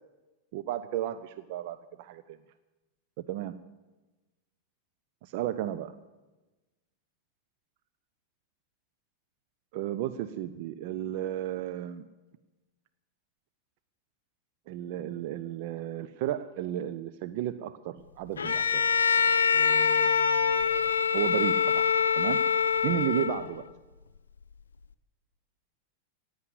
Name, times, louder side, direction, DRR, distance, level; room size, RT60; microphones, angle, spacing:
voice 1, 0.5-2.4 3.3-3.5 5.2-5.9 9.7-12.1 14.7-18.8 19.5-21.8 22.2-22.4 22.8-23.6, right 12 dB, 50° right, 12 dB, 0.5 m, -34 dB
Bowed string instrument, 18.4-23.6, left 6 dB, 70° left, 0.5 m, -25 dB
16.5 x 9.5 x 7.8 m, 1.2 s
figure-of-eight pair, 90°, 0 cm